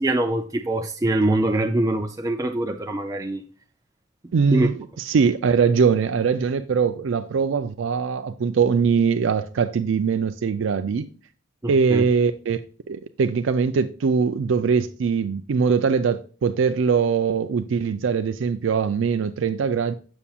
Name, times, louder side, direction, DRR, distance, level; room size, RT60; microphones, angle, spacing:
voice 1, 0.0-3.4 4.5-4.7 11.6-12.0, right 1 dB, 15° right, 0.4 m, -23 dB
voice 2, 4.3-11.1 11.7-12.6 12.9-19.9, right 5 dB, 80° right, 0.4 m, -22 dB
7.1 x 6.9 x 2.4 m
head